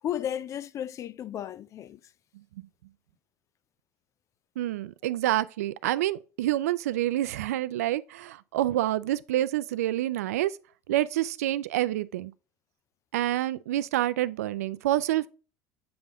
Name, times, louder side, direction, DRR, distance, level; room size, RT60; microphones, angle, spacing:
voice 1, 0.0-2.1, left 10 dB, 40° left, 0.4 m, -34 dB
voice 2, 4.6-10.6 10.9-12.3 13.1-15.3, right 14 dB, 85° right, 0.3 m, -27 dB
7.8 x 3.5 x 3.5 m
hypercardioid pair, 85°, 8 cm